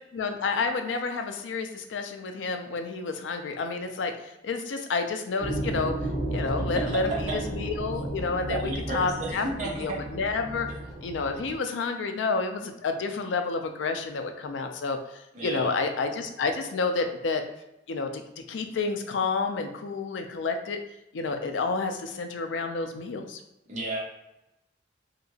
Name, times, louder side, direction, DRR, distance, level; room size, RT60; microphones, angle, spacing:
voice 1, 0.1-5.9 6.3-9.5 9.7-10.7 11.0-17.4 17.9-20.8 21.1-23.4, left 4 dB, 85° left, 6 dB, 0.4 m, -30 dB
sound 1, 5.4-11.6, right 1 dB, 85° right, 1.2 m, -33 dB
voice 2, 6.6-7.4 8.4-10.0 15.3-15.7 23.7-24.0, right 2 dB, 40° right, -5 dB, 1.0 m, -33 dB
3.2 x 2.8 x 2.7 m, 0.90 s
head